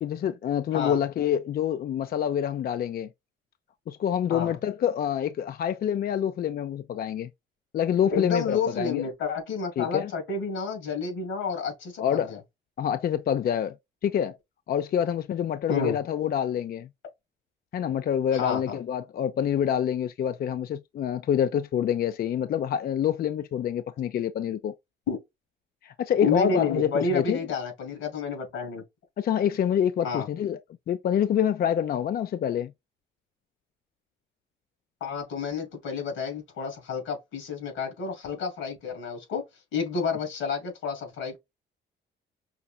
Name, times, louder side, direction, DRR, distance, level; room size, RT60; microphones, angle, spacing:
voice 1, 0.0-3.1 3.9-7.3 7.7-9.0 9.8-10.1 12.0-12.3 12.8-13.8 14.0-14.4 14.7-16.9 17.7-24.7 25.8-27.5 29.2-30.6 30.9-32.7, left 9 dB, 50° left, 0.4 m, -26 dB
voice 2, 8.1-12.4 15.7-16.0 18.3-18.6 25.1-25.2 26.2-28.8 30.0-30.3 35.0-39.4 39.7-41.4, left 4 dB, 90° left, 2.7 m, -30 dB
5.6 x 2.9 x 2.3 m
cardioid pair, 90°, 20 cm